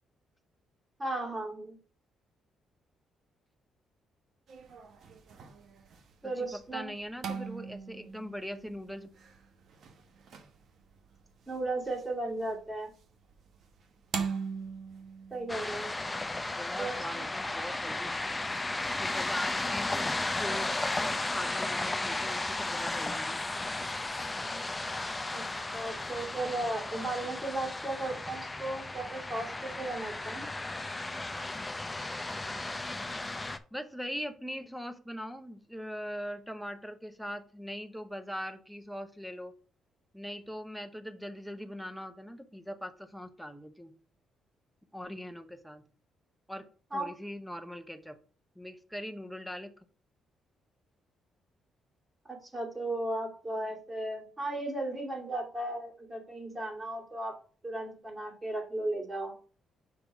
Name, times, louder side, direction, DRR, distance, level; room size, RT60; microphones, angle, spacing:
voice 1, 1.0-1.8 6.2-6.9 11.5-12.9 15.3-15.9 16.8-17.3 25.3-25.4 25.7-30.5 46.9-47.1 52.3-57.3 57.6-59.3, right 2 dB, 20° right, 1 dB, 2.5 m, -35 dB
sound 1, 4.5-24.4, right 6 dB, 65° right, 1.1 m, -45 dB
voice 2, 6.2-9.1 16.6-18.1 19.0-20.1 20.4-23.4 33.7-39.5 40.1-43.9 44.9-45.8 46.5-48.2 48.6-49.8, equal, ahead, 7 dB, 0.9 m, -41 dB
sound 2, 15.5-33.6, left 2 dB, 15° left, 0.6 m, -34 dB
5.9 x 3.7 x 5.9 m, 0.40 s
cardioid pair, 90°, 0 cm